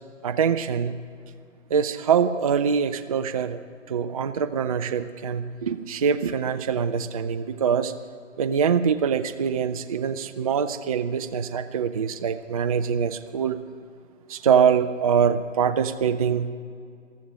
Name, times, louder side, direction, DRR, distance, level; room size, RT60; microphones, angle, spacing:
voice 1, 0.2-1.0 1.7-3.6 3.9-7.9 8.4-13.6 14.3-16.5, right 7 dB, 30° right, 11 dB, 0.4 m, -24 dB
14.5 x 13.0 x 6.3 m, 2.2 s
hypercardioid pair, 140°, 38 cm